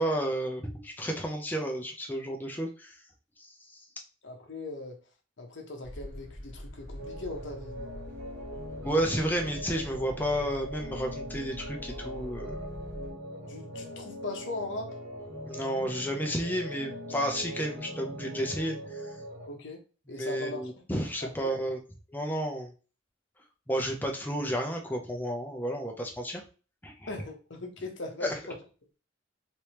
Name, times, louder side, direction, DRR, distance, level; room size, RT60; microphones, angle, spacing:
voice 1, 0.0-2.9 3.4-3.5 8.8-12.6 15.5-19.1 20.1-21.8 22.1-22.7 23.7-26.4 26.8-27.1 28.2-28.3, equal, 10° left, 0.5 m, -31 dB
voice 2, 4.2-5.0 5.4-8.0 13.5-15.0 19.5-19.8 20.1-20.8 21.2-21.5 27.1-28.6, left 2 dB, 60° left, 0.8 m, -39 dB
sound 1, 5.8-13.1, left 1 dB, 15° right, 2.0 m, -44 dB
sound 2, 7.0-19.5, equal, 55° right, 1.1 m, -41 dB
3.3 x 3.1 x 2.9 m
head